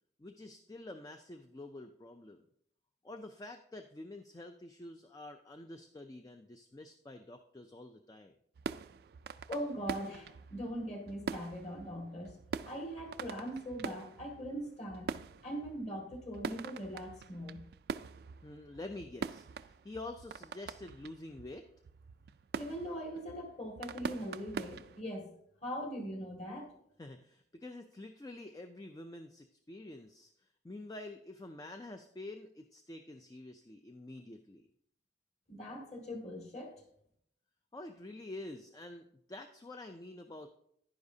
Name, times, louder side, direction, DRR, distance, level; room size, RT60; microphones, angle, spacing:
voice 1, 0.2-2.5 3.0-8.4 18.4-21.7 27.0-34.7 37.7-40.5, left 2 dB, 20° left, 6 dB, 0.4 m, -48 dB
sound 1, 8.6-25.0, right 5 dB, 55° right, 0.3 m, -44 dB
voice 2, 9.5-12.3 12.6-15.1 15.4-17.6 22.6-25.3 25.6-26.7 35.5-36.7, equal, 35° left, 2 dB, 2.0 m, -41 dB
10.5 x 9.9 x 2.7 m, 0.71 s
head